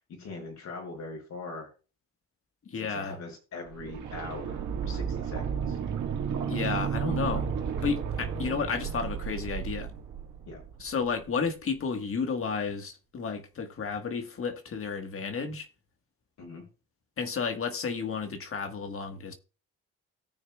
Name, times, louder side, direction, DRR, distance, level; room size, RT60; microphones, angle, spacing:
voice 1, 0.1-1.7 2.7-5.8 10.5-10.6 16.4-16.6, left 3 dB, 65° left, 5.5 m, -41 dB
voice 2, 2.6-3.2 6.5-7.5 7.8-9.9 10.8-15.7 17.2-19.3, left 5 dB, 45° left, 1.4 m, -32 dB
sound 1, 3.7-11.5 11.8-11.9, right 7 dB, 80° right, 1.8 m, -33 dB
18.0 x 6.6 x 2.3 m
cardioid pair, 90°, 30 cm